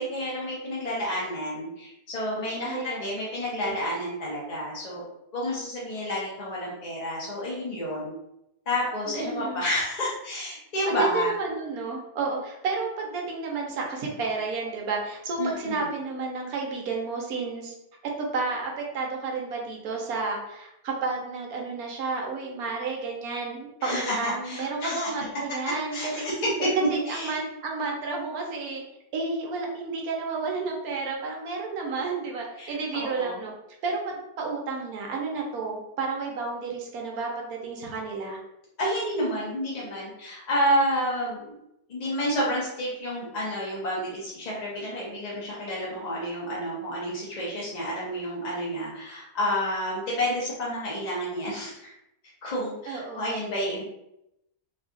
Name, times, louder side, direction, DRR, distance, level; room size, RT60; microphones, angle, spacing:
voice 1, 0.0-5.0 5.3-8.1 8.7-11.3 15.4-15.9 23.8-25.1 25.9-26.5 27.1-27.4 32.6-33.4 38.8-41.6 41.9-51.9 52.4-53.8, equal, 45° left, -6 dB, 0.6 m, -30 dB
voice 2, 2.6-3.0 3.6-3.8 9.1-9.6 10.9-17.7 18.2-26.2 26.8-28.8 29.1-33.5 33.8-38.4 52.9-53.4, right 4 dB, 70° right, 0 dB, 1.2 m, -31 dB
3.2 x 2.4 x 3.7 m, 0.84 s
omnidirectional pair, 1.7 m